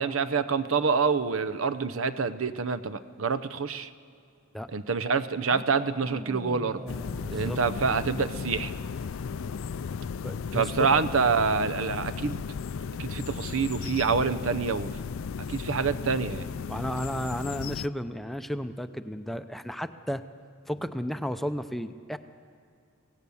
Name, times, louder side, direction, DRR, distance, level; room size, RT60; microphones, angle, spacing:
voice 1, 0.0-3.9 4.7-6.8 7.3-8.7 10.5-12.4 13.0-14.9 15.5-16.5, right 5 dB, 80° right, 12 dB, 0.8 m, -27 dB
sound 1, 5.4-8.5, equal, 20° right, 2.0 m, -43 dB
sound 2, 6.9-17.9, left 6 dB, 75° left, 0.4 m, -35 dB
voice 2, 10.2-10.9 16.7-20.2 20.7-22.2, equal, ahead, 9 dB, 0.5 m, -33 dB
24.5 x 17.0 x 7.1 m, 2.4 s
head